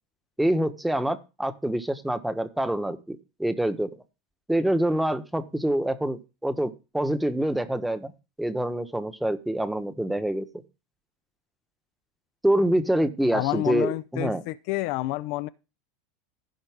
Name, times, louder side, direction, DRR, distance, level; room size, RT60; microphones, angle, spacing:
voice 1, 0.4-3.9 4.5-8.1 8.4-10.5 12.4-14.4, right 1 dB, 5° right, 1.2 m, -26 dB
voice 2, 13.3-15.5, left 18 dB, 65° left, 0.5 m, -29 dB
15.5 x 5.2 x 3.6 m
hypercardioid pair, 95°, 0 cm